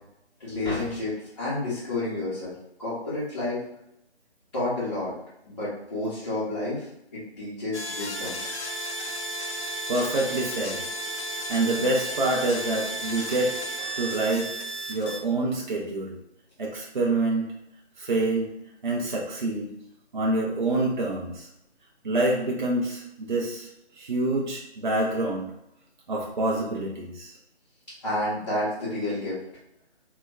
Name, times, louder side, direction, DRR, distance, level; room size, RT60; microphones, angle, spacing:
voice 1, 0.4-2.5 2.8-3.6 4.5-5.1 5.5-6.9 7.4-8.4 28.0-29.4, left 2 dB, 30° left, -12 dB, 0.7 m, -30 dB
sound 1, 7.7-15.2, right 1 dB, 90° left, 0.6 m, -33 dB
voice 2, 9.9-10.8 11.5-13.5 14.0-14.5 14.9-16.1 16.6-17.5 18.0-18.5 18.8-19.7 20.1-21.5 22.0-23.7 24.0-25.5 26.1-27.3, right 2 dB, 45° right, -2 dB, 0.4 m, -26 dB
2.2 x 2.1 x 3.3 m, 0.83 s
figure-of-eight pair, 150°, 33 cm